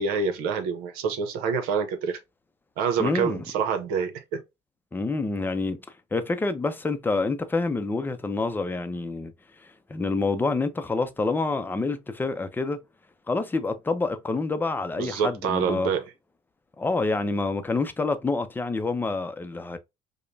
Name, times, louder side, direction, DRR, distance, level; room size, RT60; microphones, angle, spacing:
voice 1, 0.0-2.2 2.8-4.4 15.0-16.0, right 6 dB, 85° right, 0.8 m, -27 dB
voice 2, 3.0-3.4 4.9-5.8 6.1-9.3 9.9-12.8 13.3-15.9 16.8-19.8, left 3 dB, 15° left, 0.5 m, -27 dB
5.0 x 2.2 x 2.7 m
cardioid pair, 120°, 15 cm